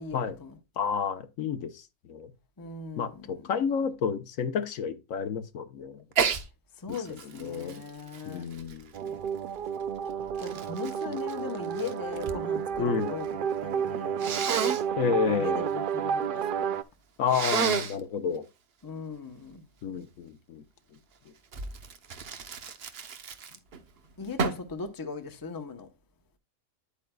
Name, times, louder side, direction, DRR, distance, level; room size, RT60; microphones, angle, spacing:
voice 1, 0.0-0.6 2.6-3.5 6.8-8.5 10.4-14.4 15.1-16.7 18.8-19.7 24.2-25.9, left 4 dB, 20° left, 0.7 m, -39 dB
voice 2, 0.8-1.8 2.1-2.3 3.0-6.0 7.4-7.8 8.2-9.2 12.8-13.1 15.0-15.7 17.2-18.4 19.8-20.6, left 6 dB, 70° left, 1.2 m, -30 dB
Sneeze, 6.1-6.4 6.9-9.3 10.0-12.4 12.7-13.3 14.2-14.8 17.3-18.0 21.5-23.8 24.4-24.7, right 6 dB, 50° right, 0.9 m, -31 dB
sound 1, 8.9-16.8, right 7 dB, 75° right, 0.4 m, -31 dB
9.3 x 8.4 x 2.2 m
omnidirectional pair, 1.5 m